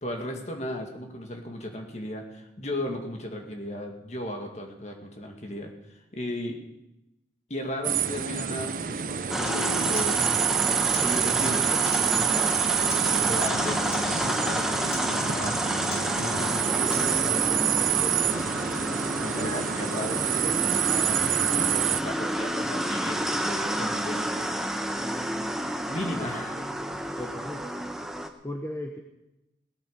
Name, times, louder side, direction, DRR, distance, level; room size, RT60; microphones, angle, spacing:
voice 1, 0.0-6.6 7.5-10.6 11.0-12.5 13.2-15.6 15.8-18.5 19.2-24.5 25.9-26.6, left 1 dB, 40° left, 3 dB, 2.1 m, -36 dB
sound 1, 7.8-22.0, right 9 dB, 50° right, 0.5 m, -27 dB
sound 2, 9.3-28.3, right 1 dB, 5° right, 0.9 m, -29 dB
Acoustic guitar, 9.5-17.4, left 3 dB, 65° left, 2.1 m, -40 dB
voice 2, 26.2-26.6 27.2-27.6 28.4-29.0, left 1 dB, 15° left, 2 dB, 1.0 m, -36 dB
17.5 x 8.9 x 6.9 m, 0.90 s
head